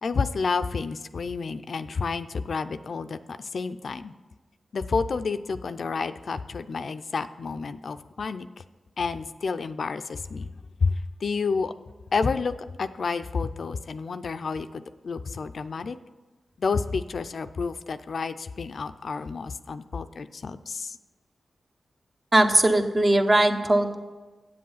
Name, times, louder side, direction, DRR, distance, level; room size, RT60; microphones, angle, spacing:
voice 1, 0.0-4.1 4.7-8.5 9.0-10.5 10.8-10.9 11.2-11.7 12.1-12.5 12.8-16.0 16.6-21.0, left 4 dB, 70° left, 10 dB, 0.4 m, -30 dB
voice 2, 22.3-23.9, right 1 dB, 40° right, 5 dB, 1.0 m, -20 dB
7.8 x 7.6 x 5.6 m, 1.3 s
cardioid pair, 45°, 0 cm